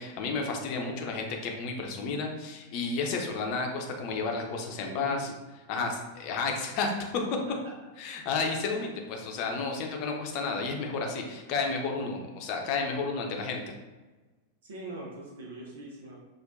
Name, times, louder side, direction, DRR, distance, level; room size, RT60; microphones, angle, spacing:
voice 1, 0.0-5.3 5.7-7.1 8.0-13.7, left 4 dB, 45° left, 2 dB, 0.7 m, -32 dB
voice 2, 4.5-5.3 5.7-5.9 7.5-7.6 14.6-16.2, right 1 dB, 60° right, -2 dB, 0.8 m, -42 dB
6.0 x 2.5 x 2.5 m, 1.2 s
figure-of-eight pair, 90°, 0 cm